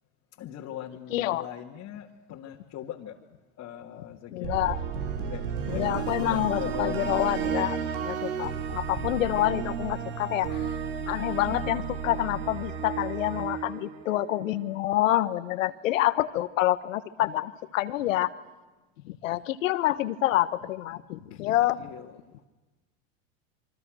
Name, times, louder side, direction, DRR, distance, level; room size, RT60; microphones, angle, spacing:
voice 1, 0.4-3.2 3.6-4.6 5.2-7.7 21.3-22.4, left 11 dB, 40° left, -1 dB, 2.2 m, -41 dB
voice 2, 1.1-1.5 4.3-4.8 5.2-5.3 5.7-10.6 11.1-18.3 19.0-21.8, left 15 dB, 85° left, 13 dB, 1.4 m, -27 dB
sound 1, 4.4-14.6, right 7 dB, 75° right, 3.0 m, -33 dB
27.5 x 24.0 x 6.4 m, 1.2 s
supercardioid pair, 115°, 38 cm